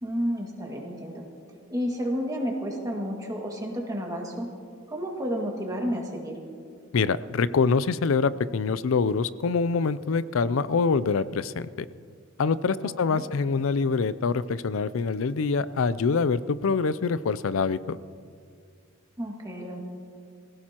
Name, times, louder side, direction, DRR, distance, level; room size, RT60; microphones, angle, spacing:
voice 1, 0.0-1.2 1.7-4.5 4.9-6.4 13.1-13.2 19.2-19.8, equal, 20° right, 0 dB, 2.0 m, -31 dB
voice 2, 6.9-11.9 12.4-18.0, left 5 dB, 85° left, 16 dB, 0.5 m, -25 dB
23.0 x 16.5 x 3.0 m, 2.2 s
head